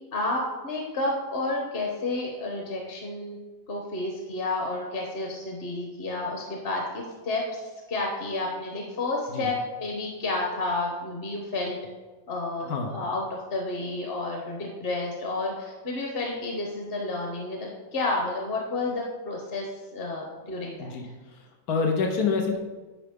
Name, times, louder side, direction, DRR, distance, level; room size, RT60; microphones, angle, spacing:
voice 1, 0.1-3.4 3.7-7.6 7.9-11.8 12.3-13.2 13.5-20.9, left 2 dB, 45° left, 0 dB, 1.1 m, -30 dB
voice 2, 20.8-22.6, left 5 dB, 90° left, 3 dB, 1.4 m, -27 dB
10.5 x 5.0 x 3.6 m, 1.2 s
omnidirectional pair, 1.6 m